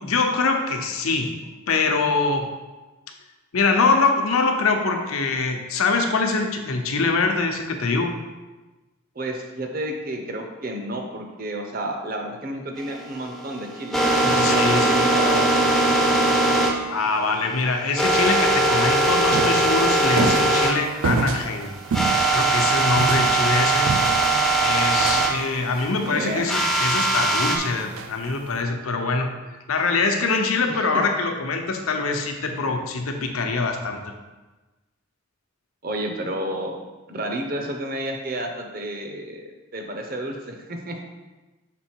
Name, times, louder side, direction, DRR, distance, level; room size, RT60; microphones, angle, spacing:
voice 1, 0.0-1.3 1.7-2.5 3.5-8.1 14.2-15.0 16.9-21.7 22.3-23.9 24.6-29.3 29.7-34.0, left 4 dB, 85° left, 4 dB, 0.8 m, -23 dB
voice 2, 9.2-14.0 14.5-16.3 26.0-26.5 30.7-31.0 35.8-36.8 37.1-39.4 39.7-40.9, right 1 dB, 45° right, 3 dB, 0.8 m, -31 dB
sound 1, 12.8-20.7 21.0-21.1 21.5-21.6 21.9-25.3 26.5-27.6, right 2 dB, ahead, 0.5 m, -20 dB
sound 2, 18.9-26.0 27.0-27.1 27.5-27.6 27.8-28.4, right 4 dB, 75° right, 0.4 m, -29 dB
6.1 x 3.9 x 4.5 m, 1.2 s
head